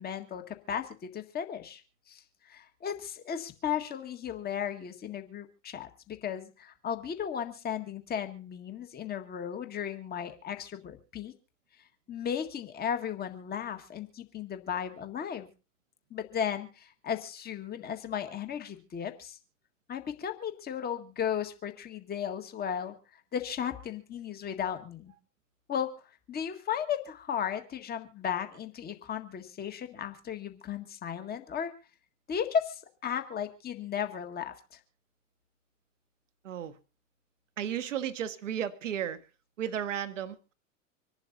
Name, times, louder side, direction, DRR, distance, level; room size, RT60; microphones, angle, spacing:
voice 1, 0.0-1.8 2.1-11.3 12.1-15.5 16.1-19.4 19.9-25.1 25.7-26.0 26.3-31.7 32.3-34.8, left 8 dB, 25° left, 1.7 m, -35 dB
voice 2, 36.4-36.8 37.6-39.2 39.6-40.5, right 9 dB, 70° right, 1.2 m, -34 dB
26.0 x 11.5 x 2.7 m
figure-of-eight pair, 85°, 39 cm